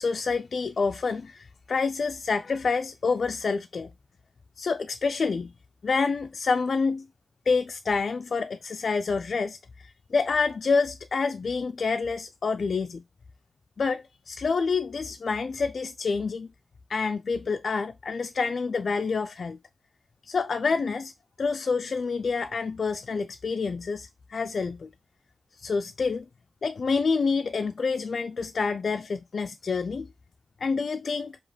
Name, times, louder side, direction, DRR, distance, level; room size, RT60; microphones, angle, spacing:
voice 1, 0.0-3.9 4.6-5.5 5.8-7.1 7.5-13.0 13.8-16.5 16.9-19.6 20.2-21.1 21.4-24.9 25.5-26.3 26.6-30.1 30.6-31.4, left 4 dB, 50° left, 0.4 m, -27 dB
7.2 x 2.9 x 4.9 m
wide cardioid pair, 170°, 0 cm